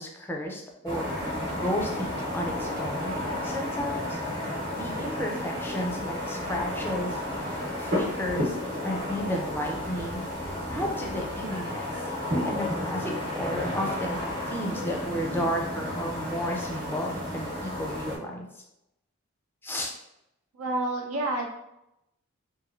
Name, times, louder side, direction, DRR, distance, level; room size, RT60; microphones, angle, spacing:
voice 1, 0.0-4.2 4.7-8.6 8.8-10.3 10.7-11.9 12.4-18.6 19.6-19.9, equal, 10° left, 0 dB, 0.4 m, -33 dB
sound 1, 0.9-18.2, left 1 dB, 50° right, 0.9 m, -32 dB
voice 2, 20.6-21.5, right 2 dB, 85° right, 0 dB, 0.6 m, -28 dB
3.0 x 2.6 x 2.5 m, 0.85 s
head